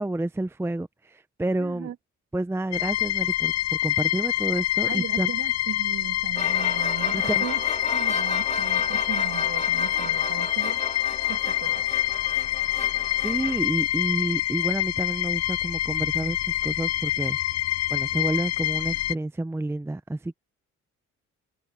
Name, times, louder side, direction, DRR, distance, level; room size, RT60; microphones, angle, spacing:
voice 1, 0.0-1.9 2.3-3.5 3.8-5.3 7.1-7.5 13.2-17.4 17.9-20.3, right 2 dB, 10° right, 0.7 m, -29 dB
voice 2, 1.6-1.9 4.8-10.8 11.3-11.9, right 11 dB, 65° right, 1.9 m, -37 dB
sound 1, 2.7-19.1, left 14 dB, 60° left, 0.6 m, -26 dB
sound 2, 6.3-13.6, left 3 dB, 20° left, 2.2 m, -34 dB
cardioid pair, 90°, 30 cm